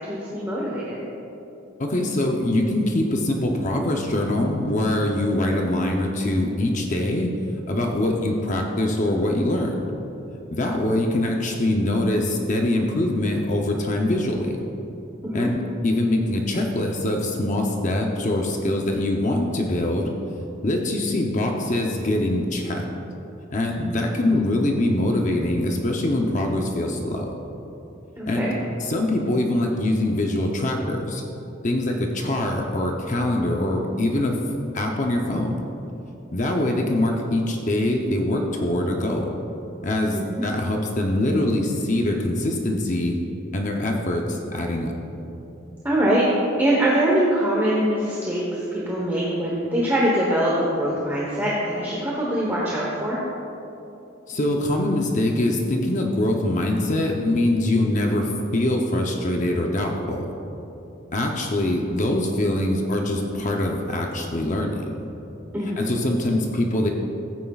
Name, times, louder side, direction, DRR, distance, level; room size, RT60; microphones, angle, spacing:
voice 1, 0.1-1.0 15.3-15.5 28.2-28.5 40.1-40.4 45.8-46.3 46.6-53.2 65.5-65.9, right 1 dB, 10° right, -5 dB, 1.1 m, -23 dB
voice 2, 1.8-7.3 7.7-9.8 10.5-14.6 15.3-20.1 20.6-22.9 23.5-27.3 28.3-28.5 28.8-31.2 31.6-34.4 34.7-35.6 36.3-39.3 39.8-43.2 43.5-44.9 54.3-60.3 61.1-64.9 65.8-66.9, left 1 dB, 35° left, 1 dB, 0.7 m, -23 dB
15.0 x 9.1 x 2.4 m, 2.9 s
head